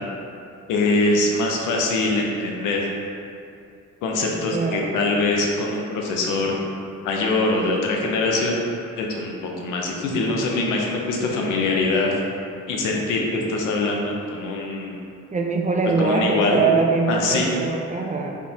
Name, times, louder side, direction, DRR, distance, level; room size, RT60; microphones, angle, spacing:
voice 1, 0.7-2.9 4.0-6.6 7.0-8.6 9.0-12.1 12.7-15.0 16.0-16.7 17.1-17.5, left 2 dB, 90° left, 0 dB, 0.7 m, -23 dB
voice 2, 4.5-4.9 15.3-18.4, right 4 dB, 25° right, 1 dB, 0.4 m, -22 dB
4.9 x 3.3 x 2.8 m, 2.5 s
cardioid pair, 90°, 30 cm